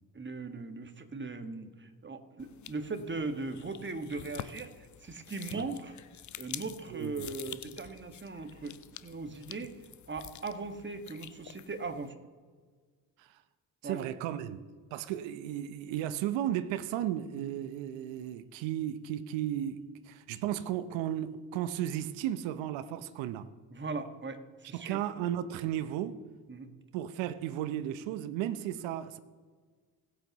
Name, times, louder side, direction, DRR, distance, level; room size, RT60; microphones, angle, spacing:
voice 1, 0.1-6.0 6.4-9.7 10.1-12.1 13.8-14.1 17.3-17.5 23.7-25.0 26.5-26.7, right 3 dB, 25° right, 1.6 m, -39 dB
sound 1, 2.4-12.1, left 11 dB, 40° left, 0.6 m, -48 dB
voice 2, 13.8-14.6 14.9-23.5 24.7-26.2 26.9-29.2, right 11 dB, 70° right, 0.9 m, -34 dB
20.0 x 8.6 x 3.0 m
hypercardioid pair, 50°, 48 cm